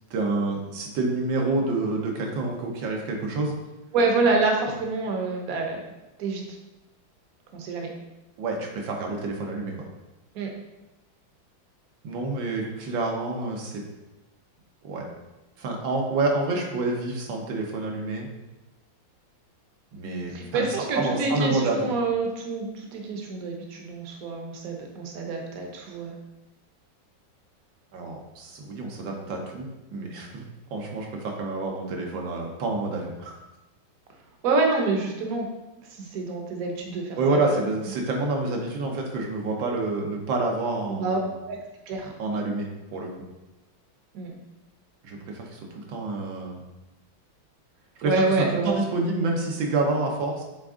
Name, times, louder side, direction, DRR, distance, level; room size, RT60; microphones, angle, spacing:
voice 1, 0.1-3.6 8.4-9.7 12.0-13.8 14.8-15.1 15.6-18.3 19.9-21.9 27.9-30.4 30.7-33.3 37.2-41.3 42.2-43.1 45.0-46.6 48.0-50.4, right 2 dB, 75° right, 1 dB, 1.7 m, -28 dB
voice 2, 3.9-5.8 6.2-6.4 7.5-7.9 10.3-10.5 20.3-26.1 34.4-35.5 36.0-37.6 40.9-41.2 41.5-41.6 41.9-42.1 44.1-44.3 48.0-48.8, right 3 dB, 55° right, 1 dB, 1.2 m, -27 dB
7.5 x 3.5 x 3.7 m, 1.0 s
omnidirectional pair, 2.1 m